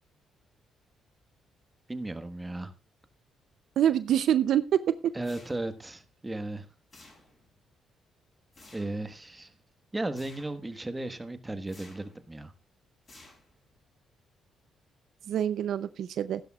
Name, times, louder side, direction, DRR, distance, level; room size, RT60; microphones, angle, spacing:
voice 1, 1.9-2.7 5.1-6.7 8.7-9.5 9.9-12.5, right 2 dB, 15° right, 9 dB, 1.3 m, -35 dB
voice 2, 3.8-4.9 15.3-16.4, right 10 dB, 70° right, 13 dB, 0.5 m, -25 dB
sound 1, 5.2-5.9 6.9-7.6 8.5-9.0 10.2-10.7 11.7-12.2 13.1-13.7, left 2 dB, 30° left, 6.5 m, -54 dB
15.5 x 11.5 x 2.4 m, 0.30 s
cardioid pair, 90°, 0 cm